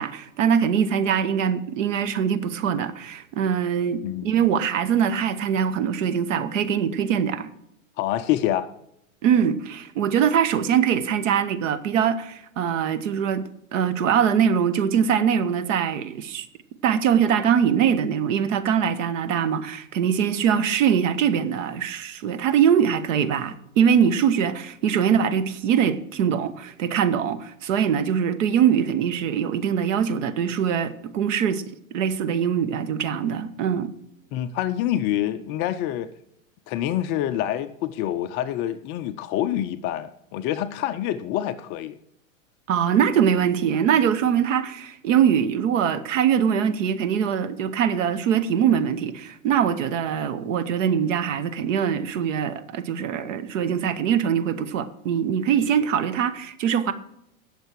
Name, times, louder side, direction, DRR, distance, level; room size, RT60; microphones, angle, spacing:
voice 1, 0.0-7.5 9.2-13.4 13.7-16.5 16.8-31.6 31.9-33.9 42.7-56.9, right 8 dB, 65° right, 1.4 m, -22 dB
voice 2, 4.0-4.4 8.0-8.7 34.3-36.1 36.7-42.0, left 12 dB, 25° left, 0.4 m, -26 dB
18.0 x 6.7 x 4.7 m
hypercardioid pair, 125°, 42 cm